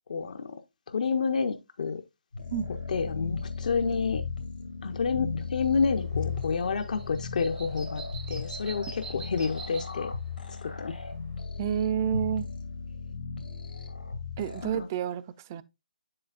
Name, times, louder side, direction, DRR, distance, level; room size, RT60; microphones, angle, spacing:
voice 1, 0.1-0.6 0.9-2.0 2.9-4.2 4.8-8.0 8.3-10.1 10.6-10.9 14.6-14.9, left 5 dB, 55° left, 0.6 m, -29 dB
sound 1, 2.3-14.8, left 5 dB, 90° left, 2.2 m, -36 dB
sound 2, 5.9-11.4, right 4 dB, 85° right, 1.8 m, -47 dB
voice 2, 11.6-12.5 14.4-15.6, right 9 dB, 20° right, 0.4 m, -29 dB
7.6 x 6.6 x 2.3 m
hypercardioid pair, 165°, 5 cm